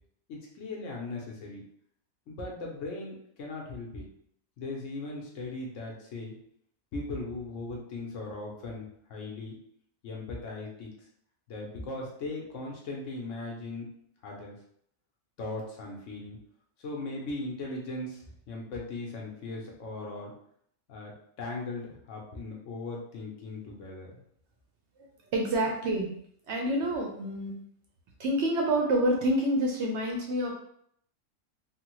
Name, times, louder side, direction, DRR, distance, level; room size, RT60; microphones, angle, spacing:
voice 1, 0.3-1.6 2.3-4.1 4.6-6.3 6.9-9.6 10.0-10.9 11.5-13.9 14.2-14.6 15.4-16.4 16.8-20.3 20.9-24.1 25.6-25.7, left 2 dB, 60° left, -1 dB, 1.0 m, -38 dB
voice 2, 25.3-26.1 26.5-27.5 28.2-30.5, right 1 dB, 65° right, 0 dB, 0.7 m, -27 dB
3.3 x 2.1 x 2.9 m, 0.68 s
omnidirectional pair, 1.6 m